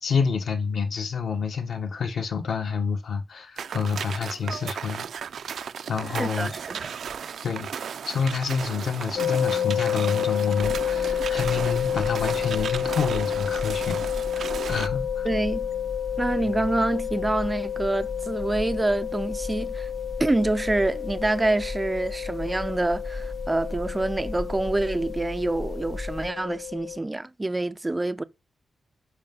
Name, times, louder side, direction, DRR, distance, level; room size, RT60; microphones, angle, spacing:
voice 1, 0.0-5.1 5.9-6.5 7.4-7.7 8.0-15.3, left 5 dB, 60° left, 1.5 m, -28 dB
sound 1, 3.6-14.9, right 7 dB, 65° right, 0.5 m, -35 dB
voice 2, 6.2-6.9 15.2-15.7 16.2-19.9 20.2-28.2, right 2 dB, 15° right, 0.4 m, -26 dB
sound 2, 9.2-27.0, left 10 dB, 75° left, 0.5 m, -30 dB
sound 3, 10.6-26.3, left 2 dB, 25° left, 0.7 m, -37 dB
12.0 x 4.9 x 5.5 m
wide cardioid pair, 175°, 0 cm